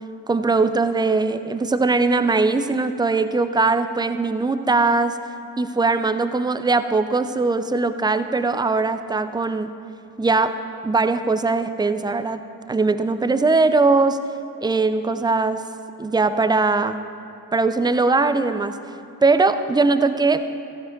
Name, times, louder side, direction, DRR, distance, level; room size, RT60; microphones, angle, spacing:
voice 1, 0.3-5.2 5.6-9.7 10.2-10.6 10.8-12.4 12.7-14.2 14.6-15.6 16.0-17.0 17.5-18.8 19.2-20.4, right 3 dB, 10° right, 11 dB, 0.5 m, -20 dB
15.0 x 11.5 x 4.0 m, 2.8 s
figure-of-eight pair, 50°, 50 cm